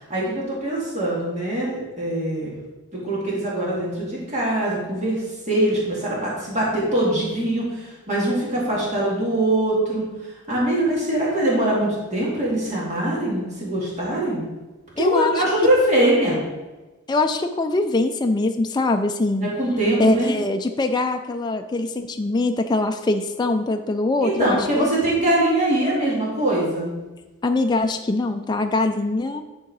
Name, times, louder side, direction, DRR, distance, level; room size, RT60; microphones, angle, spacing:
voice 1, 0.1-2.5 2.9-5.2 5.5-10.0 10.5-14.4 15.0-16.4 19.4-20.3 24.2-26.9, right 1 dB, 30° right, -5 dB, 1.9 m, -22 dB
voice 2, 15.0-15.4 17.1-19.5 20.0-24.9 27.4-29.4, left 2 dB, 20° left, 5 dB, 0.3 m, -22 dB
9.6 x 3.7 x 4.7 m, 1.1 s
head